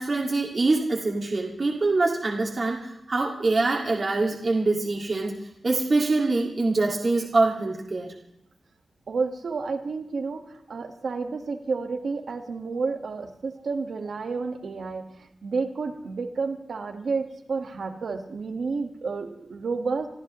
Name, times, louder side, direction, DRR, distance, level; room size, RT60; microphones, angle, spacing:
voice 1, 0.0-5.3 5.6-8.1, right 3 dB, 40° right, -2 dB, 2.1 m, -24 dB
voice 2, 9.1-20.1, right 4 dB, 65° right, 5 dB, 1.6 m, -30 dB
26.5 x 14.0 x 3.1 m, 0.81 s
wide cardioid pair, 180°, 0 cm